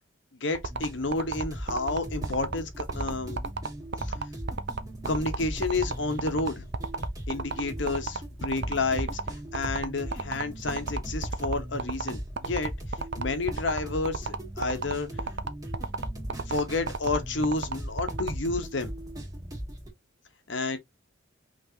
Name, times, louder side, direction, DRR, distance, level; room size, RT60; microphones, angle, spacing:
voice 1, 0.4-3.4 4.1-4.2 5.1-6.7 7.3-15.1 16.4-18.9 20.5-20.8, left 3 dB, 65° left, 1.0 m, -30 dB
sound 1, 0.5-18.3, right 4 dB, 55° right, 0.6 m, -32 dB
sound 2, 0.7-19.9, equal, 20° right, 1.9 m, -38 dB
5.6 x 3.3 x 2.8 m
head